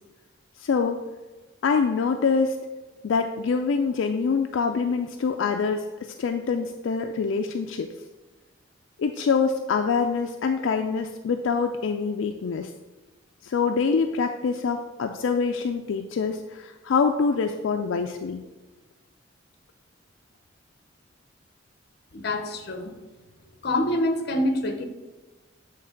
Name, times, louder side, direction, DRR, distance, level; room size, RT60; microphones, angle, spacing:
voice 1, 0.6-1.0 1.6-2.6 3.0-7.9 9.0-12.7 13.4-18.4, left 5 dB, 75° left, 4 dB, 0.4 m, -25 dB
voice 2, 22.1-22.9 23.6-24.9, left 1 dB, 55° left, 6 dB, 0.7 m, -26 dB
7.9 x 3.2 x 5.1 m, 1.2 s
head